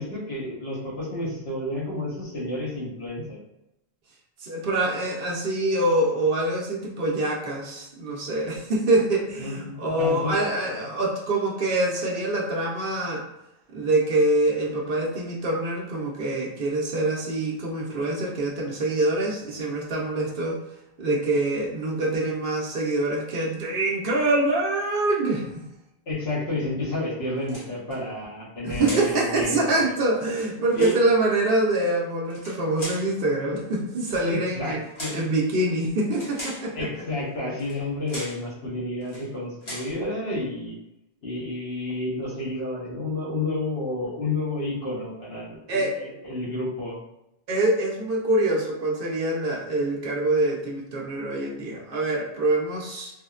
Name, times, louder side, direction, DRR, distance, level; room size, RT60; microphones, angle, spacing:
voice 1, 0.0-3.4 9.4-10.3 10.8-10.9 26.1-29.9 30.7-30.9 34.2-35.2 36.7-40.7 41.2-47.0, left 2 dB, 75° left, -6 dB, 1.3 m, -30 dB
voice 2, 4.4-13.2 13.7-20.6 21.0-25.6 28.6-34.8 35.1-36.9 45.7-46.0 47.5-53.1, right 2 dB, 65° right, -2 dB, 0.8 m, -25 dB
sound 1, 27.4-28.0 28.8-29.2 30.1-31.0 32.2-33.1 34.0-34.3 34.9-35.3 36.1-36.7 37.6-37.8 38.1-38.4 39.0-39.3 39.6-40.0, equal, 30° left, 0.8 m, -38 dB
3.4 x 2.1 x 2.3 m, 0.88 s
omnidirectional pair, 1.0 m